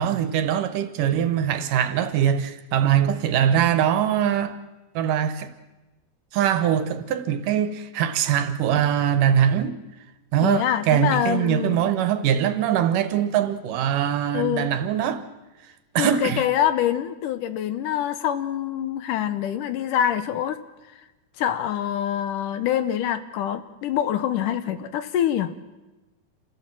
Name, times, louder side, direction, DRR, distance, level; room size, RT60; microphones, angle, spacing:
voice 1, 0.0-4.6 5.0-5.5 6.3-9.8 10.3-15.2 16.0-16.4, right 9 dB, 75° right, 2.6 m, -22 dB
voice 2, 10.4-11.9 14.3-14.7 16.0-20.6 21.4-25.5, left 10 dB, 75° left, 2.3 m, -25 dB
27.0 x 16.0 x 7.5 m
omnidirectional pair, 4.0 m